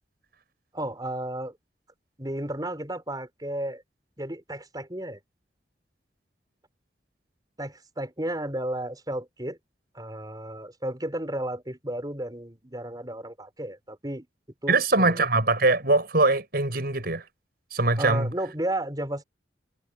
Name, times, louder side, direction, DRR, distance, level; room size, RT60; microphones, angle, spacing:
voice 1, 0.7-1.6 2.2-3.8 4.2-5.2 7.6-9.6 9.9-14.3 14.6-15.3 18.0-19.2, right 1 dB, 20° right, 6.1 m, -33 dB
voice 2, 14.7-17.2 17.7-18.3, right 2 dB, 60° right, 6.2 m, -22 dB
head